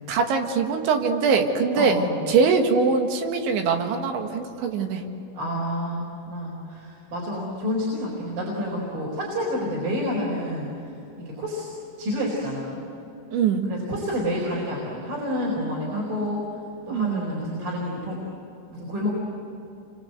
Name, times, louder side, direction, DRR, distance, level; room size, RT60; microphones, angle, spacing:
voice 1, 0.1-2.0 2.3-5.0 13.3-13.7 15.9-16.3 16.9-17.3, right 5 dB, 90° right, 4 dB, 4.1 m, -23 dB
voice 2, 1.7-2.2 5.3-10.7 11.2-11.7 12.0-12.8 13.7-16.4 16.9-18.2 18.7-19.1, equal, 50° right, -4 dB, 6.0 m, -29 dB
28.5 x 25.0 x 8.1 m, 2.8 s
omnidirectional pair, 5.1 m